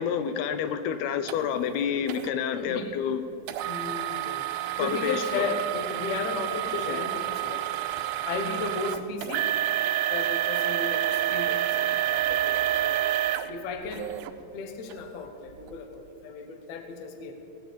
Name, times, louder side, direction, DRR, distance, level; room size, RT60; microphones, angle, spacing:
voice 1, 0.0-3.2 4.8-5.5 6.7-7.0, left 8 dB, 90° left, 10 dB, 2.7 m, -29 dB
sound 1, 1.3-1.4 2.1-2.3 3.5-14.3 14.9-15.0 15.6-15.7, right 13 dB, 80° right, 2.3 m, -28 dB
voice 2, 2.5-2.9 3.6-4.4 4.8-7.6 8.3-9.5 10.1-13.1 13.5-17.3, left 4 dB, 60° left, 6 dB, 1.9 m, -35 dB
18.5 x 6.5 x 8.5 m, 2.8 s
omnidirectional pair, 4.4 m